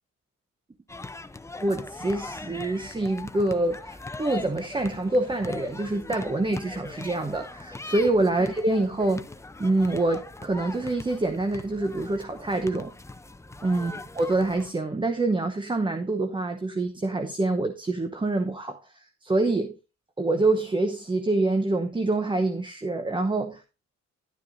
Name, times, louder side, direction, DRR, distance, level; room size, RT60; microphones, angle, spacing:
sound 1, 0.9-14.7, left 2 dB, 10° left, 0.6 m, -41 dB
voice 1, 1.6-9.3 9.6-12.9 13.6-19.8 20.2-23.6, right 2 dB, 15° right, 0.9 m, -26 dB
11.5 x 9.5 x 2.6 m
cardioid pair, 90°, 30 cm